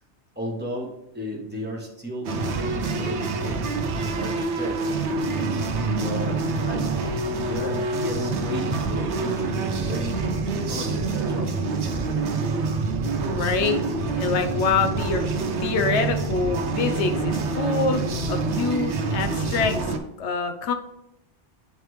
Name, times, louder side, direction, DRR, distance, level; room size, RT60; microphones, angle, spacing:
voice 1, 0.3-3.6 3.9-6.4 6.6-7.0 7.4-10.3 10.5-11.5, equal, 10° right, -1 dB, 1.1 m, -34 dB
sound 1, 2.2-20.0, right 3 dB, 80° right, 1.0 m, -26 dB
voice 2, 13.3-13.8 14.2-15.2 15.6-18.0 18.3-19.8 20.2-20.7, left 5 dB, 85° left, 7 dB, 1.0 m, -25 dB
9.2 x 3.3 x 3.1 m, 0.82 s
omnidirectional pair, 1.1 m